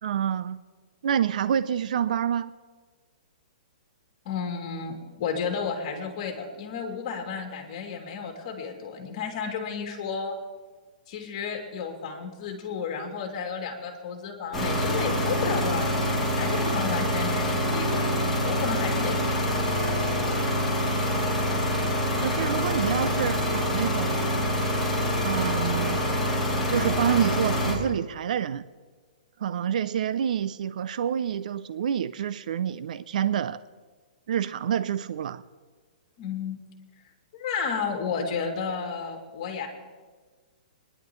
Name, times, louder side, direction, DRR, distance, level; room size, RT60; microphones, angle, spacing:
voice 1, 0.0-0.6 1.0-2.5 22.2-24.3 25.2-26.0 26.7-28.6 29.4-33.6 34.3-35.4, right 9 dB, 60° right, 14 dB, 0.5 m, -27 dB
voice 2, 4.2-10.3 11.1-19.6 36.2-36.6 37.3-39.7, left 6 dB, 40° left, 2 dB, 2.7 m, -32 dB
sound 1, 14.5-27.7, equal, 5° left, 2.8 m, -26 dB
24.0 x 11.0 x 3.2 m, 1.4 s
hypercardioid pair, 160°, 5 cm